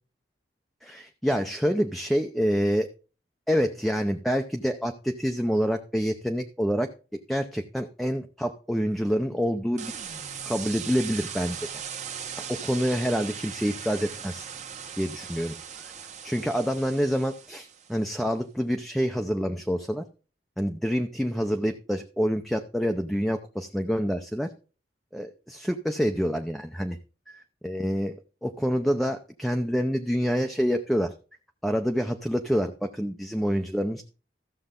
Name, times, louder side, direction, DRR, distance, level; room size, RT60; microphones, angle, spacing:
voice 1, 0.8-2.9 3.5-9.9 10.5-11.7 12.5-14.5 15.0-15.9 16.2-20.0 20.6-24.5 25.1-27.0 27.3-28.2 28.4-31.1 31.6-34.0, equal, ahead, 5 dB, 0.6 m, -27 dB
sound 1, 9.8-18.0, right 7 dB, 45° right, 1.3 m, -39 dB
14.0 x 6.8 x 3.7 m, 0.35 s
head